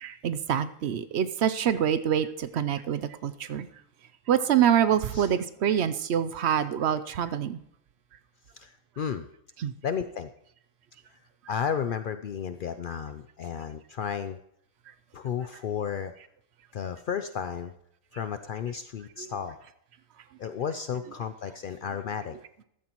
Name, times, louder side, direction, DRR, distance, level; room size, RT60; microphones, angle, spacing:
voice 1, 0.0-3.7 4.3-7.6 9.6-9.7, right 9 dB, 60° right, 13 dB, 0.7 m, -26 dB
voice 2, 8.5-9.3 9.8-10.3 11.5-14.4 15.1-16.1 16.7-17.7 18.1-19.6 20.4-22.4, left 7 dB, 85° left, 10 dB, 0.4 m, -33 dB
13.5 x 13.5 x 3.0 m, 0.74 s
omnidirectional pair, 1.5 m